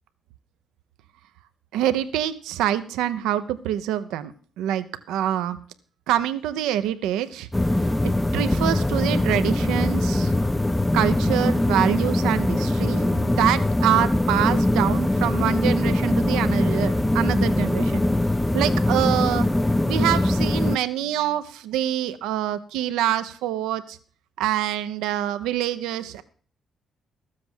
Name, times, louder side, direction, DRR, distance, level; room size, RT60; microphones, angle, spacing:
voice 1, 1.7-5.6 6.1-7.5 8.0-10.3 10.9-18.0 18.5-19.5 19.8-24.0 24.4-26.2, right 12 dB, 90° right, 11 dB, 0.8 m, -25 dB
sound 1, 7.5-20.8, left 1 dB, 10° left, 0.5 m, -22 dB
13.0 x 7.6 x 6.2 m, 0.43 s
supercardioid pair, 70°, 0 cm